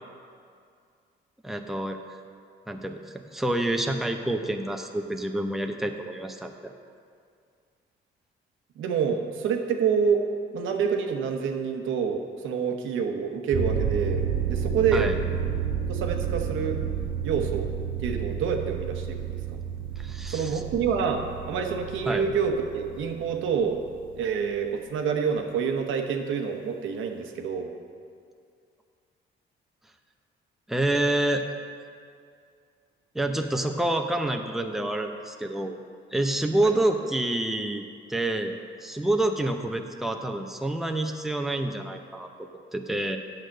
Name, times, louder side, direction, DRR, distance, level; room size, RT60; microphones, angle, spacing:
voice 1, 1.4-2.0 2.7-3.0 3.3-6.7 14.9-15.1 20.0-20.6 21.5-21.7 22.1-22.3 30.7-31.4 33.1-35.8 36.1-37.8 38.1-38.5 38.8-42.3 42.7-43.2, right 1 dB, ahead, 4 dB, 0.7 m, -27 dB
voice 2, 8.8-10.2 10.5-15.2 15.9-16.8 17.2-17.7 18.0-19.3 20.3-23.8 24.2-27.7 36.6-36.7, right 6 dB, 85° right, 4 dB, 1.0 m, -27 dB
sound 1, 13.5-24.3, right 7 dB, 45° right, 1.3 m, -31 dB
8.7 x 6.6 x 6.4 m, 2.3 s
cardioid pair, 90°, 20 cm